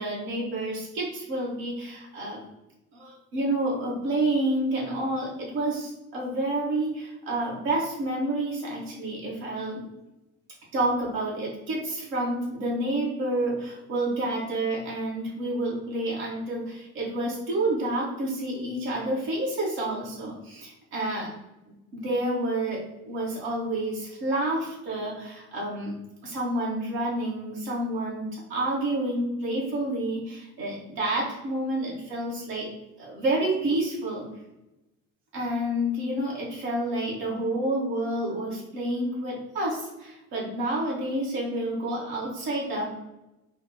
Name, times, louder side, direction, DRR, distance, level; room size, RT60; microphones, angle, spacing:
voice 1, 0.0-2.4 2.9-9.9 10.7-21.3 21.9-22.8 23.1-25.9 26.2-32.7 33.0-34.2 35.3-42.9, right 1 dB, 60° right, -4 dB, 1.4 m, -29 dB
3.5 x 2.4 x 3.7 m, 0.96 s
figure-of-eight pair, 55°, 42 cm